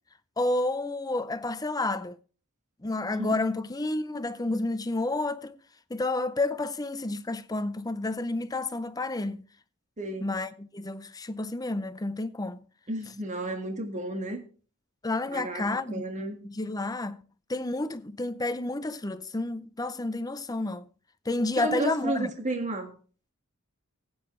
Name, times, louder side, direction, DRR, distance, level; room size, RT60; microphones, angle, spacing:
voice 1, 0.4-2.2 2.8-5.6 5.9-9.4 10.2-12.6 15.0-16.0 16.4-17.2 17.5-20.8 21.3-22.3, left 2 dB, 15° left, 0.6 m, -30 dB
voice 2, 10.0-10.3 12.9-14.4 15.3-16.4 21.6-23.0, right 1 dB, 35° right, 1.8 m, -32 dB
16.0 x 8.7 x 3.2 m
head